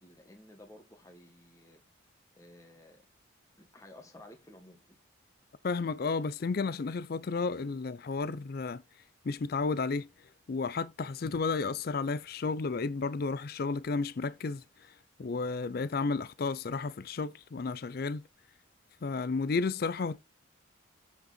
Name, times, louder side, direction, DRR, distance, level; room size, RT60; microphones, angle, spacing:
voice 1, 0.0-1.8 2.3-3.0 3.6-5.0, left 1 dB, 15° left, 1.6 m, -54 dB
voice 2, 5.6-8.8 9.2-10.1 10.5-14.6 15.2-18.2 19.0-20.2, left 4 dB, 45° left, 0.4 m, -32 dB
8.1 x 6.9 x 4.2 m
head